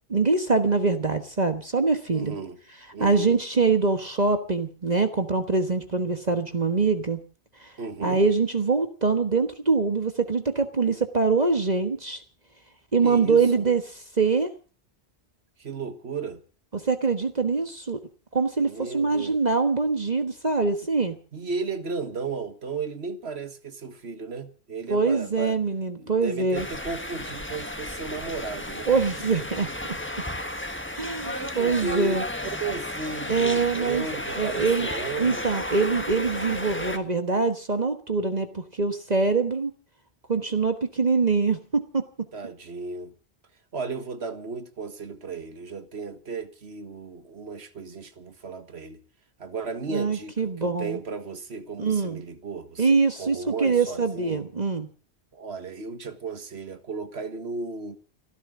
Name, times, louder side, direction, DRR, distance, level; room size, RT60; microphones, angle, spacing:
voice 1, 0.1-2.4 3.0-7.2 7.6-7.7 8.0-12.2 12.9-13.8 14.2-14.5 16.7-18.0 18.3-21.1 24.9-26.7 28.9-29.7 30.9-32.2 33.3-34.0 34.4-34.9 35.2-39.7 40.3-42.0 49.9-51.0 51.8-52.2 52.8-54.9, right 4 dB, 40° right, 1.5 m, -24 dB
voice 2, 2.1-2.6 2.9-3.4 7.8-8.2 13.0-13.7 15.6-16.4 18.6-19.4 21.3-25.6 26.0-28.9 31.2-35.5 42.3-43.1 43.7-49.0 49.4-54.4 55.3-58.0, right 4 dB, 70° right, 1.8 m, -35 dB
sound 1, 26.5-37.0, left 1 dB, 10° left, 1.4 m, -33 dB
29.5 x 11.5 x 3.8 m
omnidirectional pair, 1.1 m